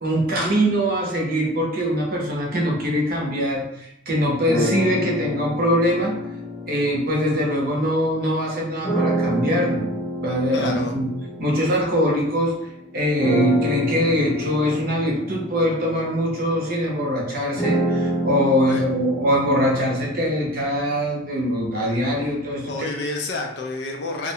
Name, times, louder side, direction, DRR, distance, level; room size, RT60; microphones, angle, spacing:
voice 1, 0.0-6.2 6.7-9.8 10.2-11.1 11.4-12.5 12.9-22.9, equal, 50° right, -2 dB, 0.6 m, -22 dB
sound 1, 4.5-8.0 8.8-12.6 13.2-21.2, equal, 25° left, 0.6 m, -28 dB
voice 2, 10.5-10.9 18.7-18.8 22.7-24.3, left 2 dB, 60° left, 3 dB, 0.4 m, -29 dB
2.4 x 2.1 x 2.8 m, 0.77 s
head